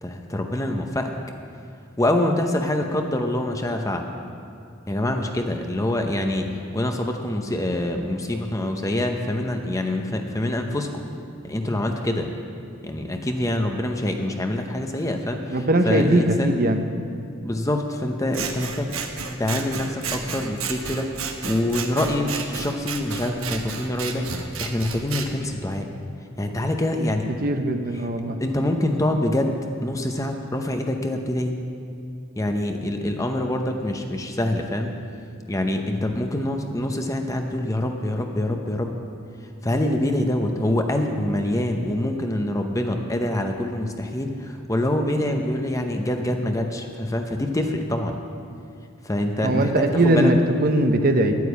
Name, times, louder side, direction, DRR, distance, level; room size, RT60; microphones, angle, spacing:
voice 1, 0.0-1.1 2.0-4.1 4.9-11.0 11.4-12.3 12.8-16.6 17.4-18.9 19.4-25.9 26.4-27.3 28.4-31.6 32.4-34.9 35.5-38.9 39.4-48.2 49.0-50.3, left 1 dB, 15° left, 4 dB, 0.7 m, -25 dB
voice 2, 15.5-16.8 27.4-28.4 49.4-50.4 50.6-51.3, right 1 dB, 45° right, 6 dB, 0.9 m, -20 dB
Scissors, 18.3-25.3, right 6 dB, 85° right, 1.1 m, -32 dB
10.5 x 9.4 x 8.2 m, 2.5 s
head